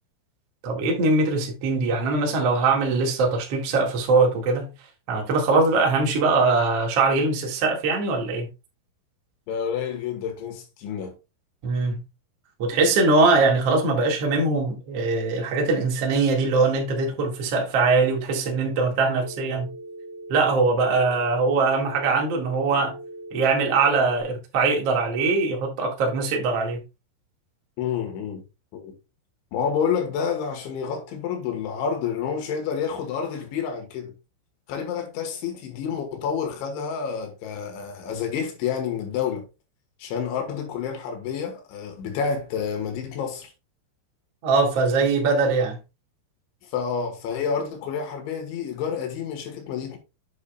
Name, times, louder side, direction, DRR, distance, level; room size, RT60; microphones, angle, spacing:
voice 1, 0.6-4.7 5.1-8.5 11.6-12.0 12.6-19.7 20.3-23.0 23.3-26.8 44.4-45.8, right 3 dB, 65° right, 1.5 m, -22 dB
voice 2, 9.5-11.2 27.8-28.4 28.7-28.9 29.5-34.1 34.7-39.5 40.0-43.5 46.6-50.0, left 7 dB, 70° left, 3.5 m, -29 dB
Telephone, 19.2-24.2, right 2 dB, 80° right, 4.5 m, -40 dB
8.2 x 8.1 x 2.3 m
omnidirectional pair, 5.9 m